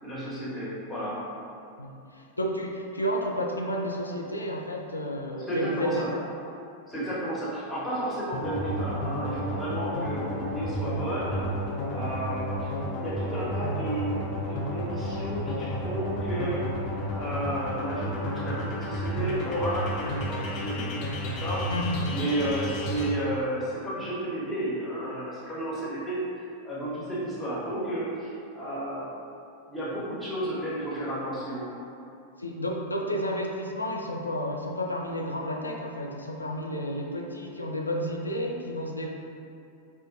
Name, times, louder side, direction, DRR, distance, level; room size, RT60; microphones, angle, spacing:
voice 1, 0.0-1.2 5.5-6.1 6.9-11.4 11.9-12.7 13.0-14.2 14.5-16.7 17.1-21.7 22.1-26.2 26.6-29.1 29.7-31.6, right 1 dB, 5° left, -9 dB, 1.2 m, -32 dB
voice 2, 1.8-6.0 21.7-22.0 32.4-39.1, equal, 80° left, 0 dB, 0.4 m, -31 dB
sound 1, 8.3-23.1, equal, 40° left, 0.6 m, -32 dB
5.1 x 2.2 x 2.7 m, 2.7 s
figure-of-eight pair, 90°, 0 cm